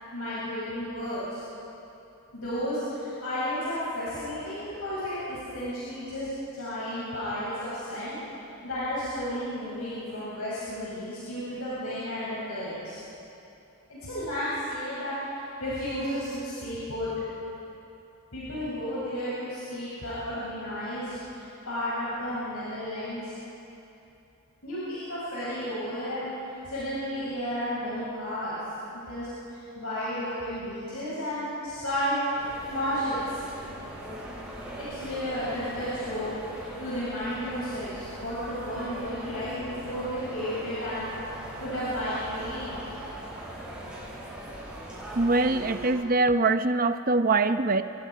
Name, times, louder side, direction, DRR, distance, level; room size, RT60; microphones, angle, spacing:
voice 1, 0.1-1.4 2.3-6.3 6.5-8.2 8.6-13.0 13.9-15.3 15.6-17.1 18.3-23.3 24.6-26.3 26.6-28.6 28.9-32.2 32.7-33.4 34.8-41.1 41.6-42.9, equal, 75° left, -10 dB, 7.3 m, -33 dB
sound 1, 32.3-45.9, right 1 dB, 5° right, 6.7 m, -40 dB
voice 2, 45.2-47.8, right 3 dB, 40° right, 9 dB, 0.8 m, -23 dB
29.0 x 22.0 x 5.0 m, 2.8 s
head